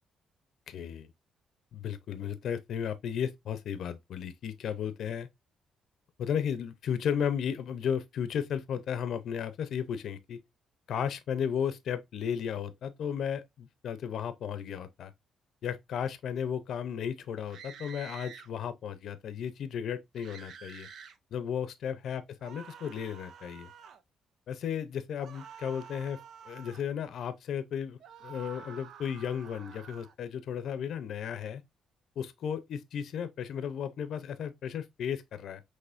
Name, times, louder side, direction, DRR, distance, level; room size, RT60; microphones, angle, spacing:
voice 1, 0.7-1.1 1.7-5.3 6.2-10.4 10.9-15.1 15.6-20.9 21.3-23.7 24.5-26.2 26.5-31.6 32.2-35.6, left 8 dB, 70° left, 0.6 m, -34 dB
sound 1, 17.5-18.5 20.2-21.2 22.4-24.0 25.2-26.9 28.0-30.1, right 7 dB, 70° right, 0.6 m, -49 dB
5.5 x 3.3 x 2.5 m
cardioid pair, 90°, 0 cm